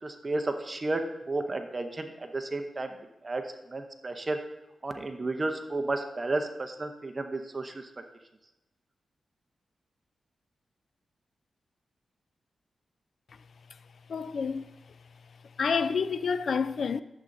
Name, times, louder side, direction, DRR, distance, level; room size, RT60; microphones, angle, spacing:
voice 1, 0.0-2.9 3.2-3.4 3.7-4.4 4.8-7.9, right 2 dB, 30° right, 0.7 m, -32 dB
voice 2, 14.1-14.6 15.6-17.0, left 5 dB, 65° left, 0.3 m, -28 dB
11.5 x 7.6 x 2.6 m
wide cardioid pair, 95°, 0 cm